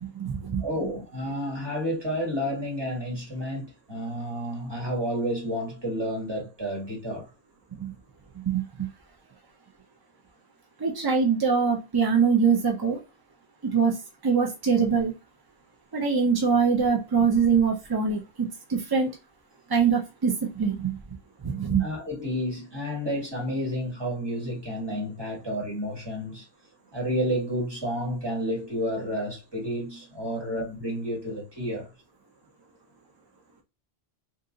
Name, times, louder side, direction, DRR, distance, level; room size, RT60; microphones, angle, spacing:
voice 1, 0.0-0.6 7.8-7.9 8.5-8.9 10.8-13.0 13.6-14.0 14.2-15.1 15.9-19.1 19.7-20.9 21.4-21.8, right 6 dB, 40° right, 0.3 m, -23 dB
voice 2, 0.6-7.3 21.8-26.5 26.9-31.9, equal, 25° right, 1.5 m, -30 dB
2.6 x 2.6 x 3.7 m
omnidirectional pair, 1.1 m